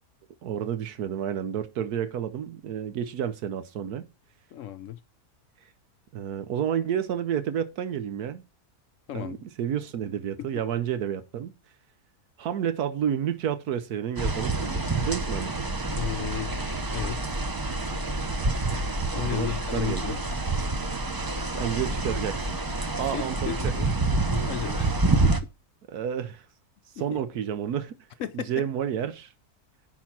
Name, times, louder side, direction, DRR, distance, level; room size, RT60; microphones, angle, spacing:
voice 1, 0.4-4.0 6.1-8.4 9.1-11.5 12.4-15.6 19.1-20.2 21.5-22.5 23.0-23.9 25.9-26.5 26.9-28.0 28.3-29.3, right 9 dB, 80° right, 1.3 m, -30 dB
voice 2, 4.5-5.0 9.1-9.3 10.4-10.5 15.9-17.4 19.1-20.2 23.0-25.0 25.2-25.5 27.1-27.2 28.2-28.5, left 12 dB, 65° left, 0.9 m, -35 dB
sound 1, 14.2-25.4, right 2 dB, 30° right, 0.4 m, -27 dB
10.5 x 4.4 x 5.8 m
omnidirectional pair, 1.6 m